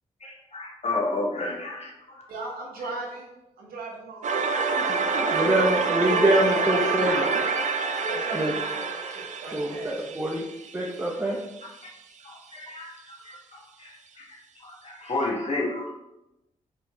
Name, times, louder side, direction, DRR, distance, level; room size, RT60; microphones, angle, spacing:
voice 1, 0.2-2.2 5.3-5.5 11.3-11.4 12.2-14.3 14.6-16.0, left 2 dB, 45° left, -3 dB, 1.2 m, -32 dB
voice 2, 2.3-3.3 3.6-4.4 4.9-5.5 6.0-6.3 6.6-6.9 8.0-10.2, right 2 dB, 80° right, -1 dB, 0.9 m, -38 dB
sound 1, 4.2-11.1, right 4 dB, 50° right, 0.5 m, -27 dB
voice 3, 5.3-7.5 8.3-8.5 9.5-10.4 10.7-11.4, right 1 dB, 15° right, -3 dB, 0.7 m, -25 dB
4.0 x 3.1 x 2.8 m, 0.93 s
hypercardioid pair, 40°, 15 cm